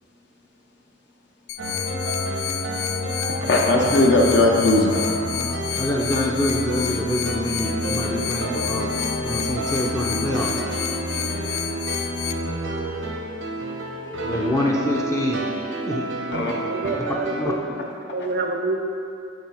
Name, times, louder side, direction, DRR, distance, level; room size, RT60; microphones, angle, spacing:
sound 1, 1.5-12.3, left 13 dB, 80° left, 0.3 m, -31 dB
sound 2, 1.6-17.4, right 1 dB, 90° right, 0.8 m, -29 dB
voice 1, 3.4-5.1 12.4-13.0 14.0-14.4 16.3-16.5, left 2 dB, 60° left, 0 dB, 0.9 m, -20 dB
voice 2, 5.8-8.9 9.2-10.6 14.3-15.5 15.9-16.1 17.4-17.5, left 1 dB, 15° left, -2 dB, 0.5 m, -25 dB
voice 3, 16.3-17.9 18.1-18.8, right 3 dB, 50° right, 3 dB, 0.5 m, -28 dB
8.8 x 3.2 x 4.8 m, 2.5 s
head